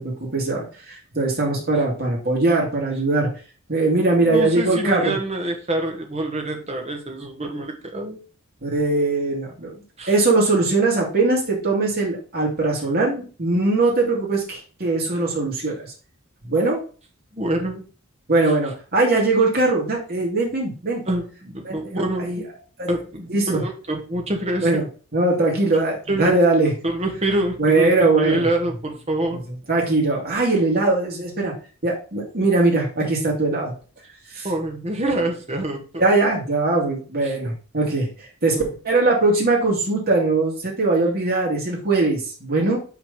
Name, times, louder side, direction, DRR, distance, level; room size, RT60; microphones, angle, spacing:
voice 1, 0.0-3.3 3.7-5.2 8.6-15.9 16.4-16.8 18.3-21.0 21.6-21.9 22.2-22.4 22.8-22.9 23.3-23.6 24.6-24.8 25.1-26.7 27.6-28.5 29.3-29.4 29.7-31.5 31.8-33.7 34.3-34.5 36.0-38.6 38.8-42.8, right 2 dB, 45° right, -2 dB, 2.7 m, -21 dB
voice 2, 4.2-8.2 10.0-10.1 17.3-17.8 21.0-22.5 22.9-24.8 26.1-26.4 26.8-29.4 34.4-35.9 37.2-37.3 38.5-38.7, right 1 dB, 30° right, 3 dB, 1.4 m, -26 dB
6.0 x 4.1 x 5.3 m, 0.37 s
head